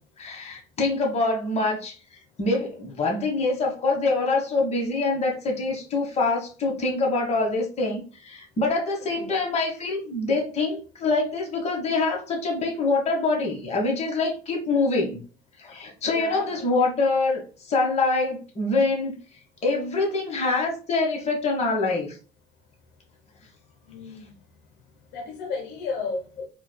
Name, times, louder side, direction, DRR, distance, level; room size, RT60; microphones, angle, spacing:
voice 1, 0.2-2.0 2.4-15.2 15.6-19.1 19.6-22.2, left 3 dB, 40° left, 1.2 m, -25 dB
voice 2, 9.0-9.3 16.0-16.7 23.9-24.4 25.1-26.5, left 4 dB, 85° left, 0.8 m, -34 dB
4.5 x 2.3 x 2.2 m
cardioid pair, 110°, 17 cm